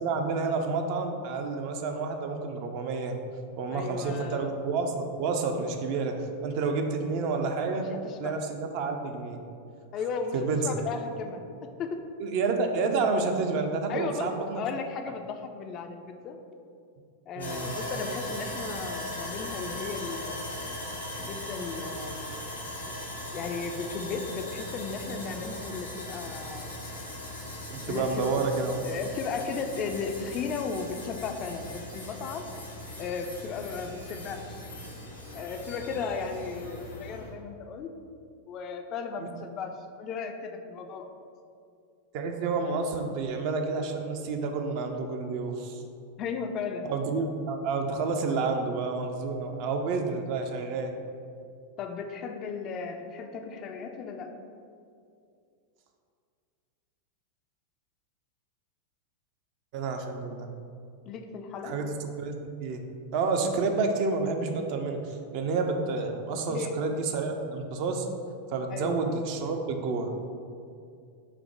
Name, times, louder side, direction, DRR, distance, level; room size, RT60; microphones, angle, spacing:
voice 1, 0.0-3.2 3.6-7.9 8.2-9.4 10.3-10.7 12.2-14.6 17.4-18.2 27.7-28.8 39.2-39.3 42.1-45.8 46.9-50.9 59.7-60.5 61.6-62.8 63.1-68.1 68.5-70.1, right 4 dB, 45° right, 4 dB, 0.4 m, -29 dB
voice 2, 3.7-4.5 7.8-8.3 9.9-10.3 10.6-12.0 13.9-14.3 14.6-16.4 17.3-20.6 21.2-22.3 23.3-26.8 27.7-28.5 28.8-32.5 33.0-34.6 35.3-38.0 38.5-41.1 46.2-46.9 51.8-54.4 61.1-61.8 66.5-66.8 68.7-69.0, left 5 dB, 35° left, 5 dB, 0.3 m, -35 dB
Sawing, 17.4-37.3, left 1 dB, 80° left, 1.0 m, -39 dB
5.7 x 2.1 x 4.5 m, 2.4 s
figure-of-eight pair, 90°, 0 cm